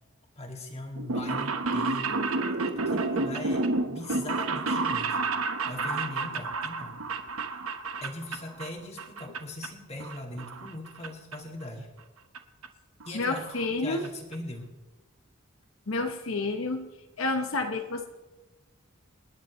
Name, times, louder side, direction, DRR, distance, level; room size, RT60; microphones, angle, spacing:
voice 1, 0.4-2.3 2.9-5.2 5.7-7.0 8.0-11.9 13.0-13.6 13.8-14.7, left 1 dB, 30° left, 2 dB, 2.1 m, -40 dB
sound 1, 0.9-8.7 9.0-9.7 10.0-11.1 11.3-11.4 12.3-12.4 12.6-12.7 13.0-13.1 13.4-13.7 14.0-14.1 14.3-14.4, right 3 dB, 80° right, 1.0 m, -30 dB
voice 2, 13.1-14.0 15.9-16.9 17.2-18.0, left 3 dB, 70° left, 5 dB, 0.9 m, -29 dB
27.5 x 10.5 x 3.1 m, 1.2 s
head